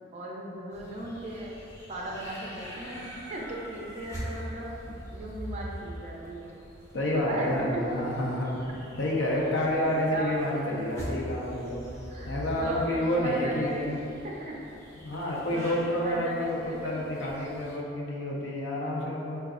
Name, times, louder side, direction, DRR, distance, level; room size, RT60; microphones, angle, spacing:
voice 1, 0.1-1.5 1.9-3.0 3.3-4.7 5.1-6.5 7.1-8.0 9.8-10.7 12.1-13.9 14.2-14.6 15.3-17.5, right 1 dB, 35° right, -3 dB, 0.4 m, -37 dB
sound 1, 0.7-17.8, equal, 15° left, 0.6 m, -43 dB
voice 2, 6.9-8.6 9.0-11.8 12.2-14.0 15.0-19.4, left 1 dB, 75° left, -3 dB, 0.5 m, -29 dB
4.8 x 2.2 x 2.4 m, 2.8 s
head